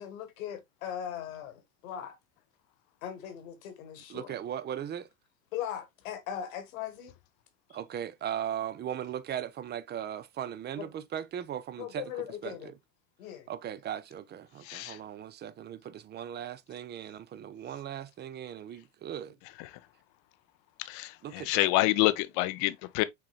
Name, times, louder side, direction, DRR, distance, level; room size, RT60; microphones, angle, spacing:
voice 1, 0.0-2.2 3.0-4.4 5.5-7.1 7.7-7.8 10.8-10.9 11.8-12.7 13.2-13.5, left 10 dB, 70° left, 1.6 m, -39 dB
voice 2, 4.1-5.1 7.7-12.7 13.5-19.3 21.2-21.7, right 10 dB, 25° right, 0.5 m, -38 dB
voice 3, 14.7-15.0 20.9-23.0, left 18 dB, 50° left, 0.6 m, -27 dB
5.8 x 3.8 x 2.2 m
hypercardioid pair, 85°, 42 cm